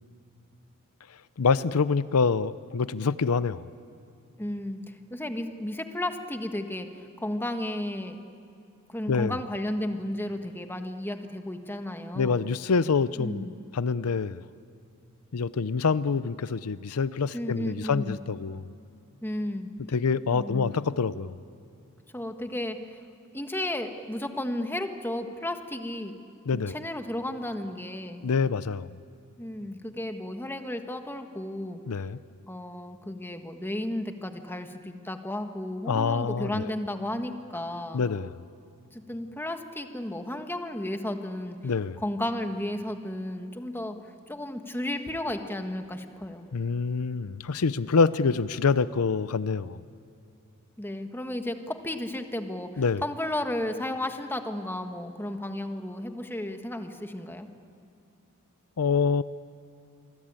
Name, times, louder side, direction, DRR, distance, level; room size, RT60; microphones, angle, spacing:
voice 1, 1.4-3.7 9.1-9.4 12.1-14.4 15.3-18.6 19.9-21.4 26.5-26.8 28.2-28.9 31.9-32.2 35.9-36.7 37.9-38.3 41.6-42.0 46.5-49.8 52.8-53.0 58.8-59.2, left 5 dB, 85° left, 16 dB, 0.6 m, -26 dB
voice 2, 4.4-4.8 5.1-8.2 8.9-12.4 13.2-13.6 17.3-18.2 19.2-19.7 20.3-20.8 22.1-22.8 23.3-26.2 26.5-28.2 29.4-31.8 32.5-38.0 38.9-41.7 42.0-44.0 44.3-46.5 50.8-57.5, left 1 dB, 10° left, 6 dB, 1.5 m, -33 dB
27.5 x 24.0 x 9.0 m, 2.5 s
head